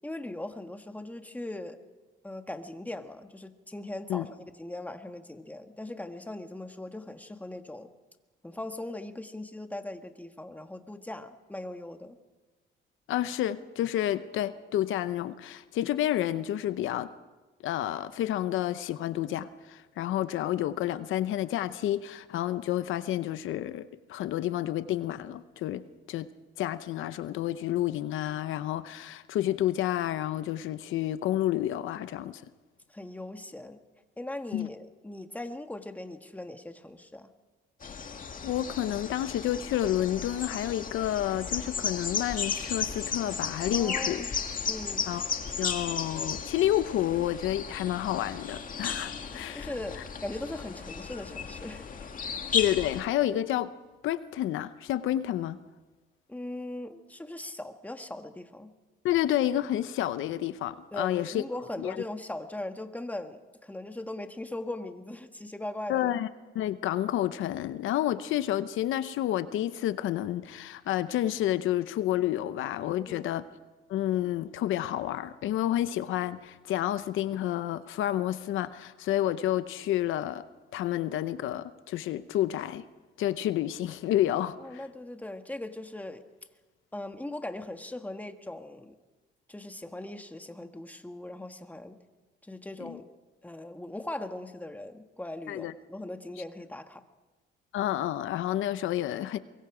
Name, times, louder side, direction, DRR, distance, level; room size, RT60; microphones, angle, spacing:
voice 1, 0.0-1.8 2.2-7.9 8.4-12.2 32.9-33.8 34.2-37.3 43.7-44.3 44.7-45.1 49.5-51.9 52.2-52.4 56.3-58.7 60.9-66.2 73.1-73.3 84.6-86.2 86.9-89.0 89.5-92.0 92.4-93.0 93.4-97.0, left 1 dB, 10° left, 1.6 m, -39 dB
voice 2, 13.1-17.1 17.6-25.8 26.1-26.3 26.6-32.4 34.5-34.7 38.4-44.2 45.1-45.2 45.6-50.0 52.5-53.7 54.0-55.6 59.0-61.4 61.8-62.0 65.9-66.3 66.5-73.4 73.9-80.4 80.7-82.9 83.2-84.8 92.8-93.0 95.5-95.7 97.7-99.4, left 12 dB, 85° left, 0.8 m, -30 dB
sound 1, 37.8-53.0, left 6 dB, 45° left, 2.0 m, -35 dB
24.0 x 22.5 x 5.0 m
cardioid pair, 90°, 20 cm